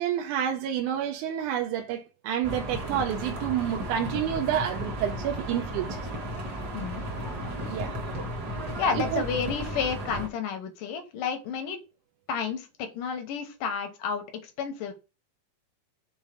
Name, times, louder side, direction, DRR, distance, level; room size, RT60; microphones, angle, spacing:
voice 1, 0.0-6.1 7.7-8.0 8.9-9.2, right 9 dB, 75° right, 2.1 m, -29 dB
sound 1, 2.4-10.3, right 1 dB, 40° right, 1.5 m, -34 dB
voice 2, 6.7-7.0 8.8-11.8 12.3-14.9, left 6 dB, 90° left, 2.7 m, -31 dB
6.3 x 3.8 x 5.0 m
omnidirectional pair, 3.7 m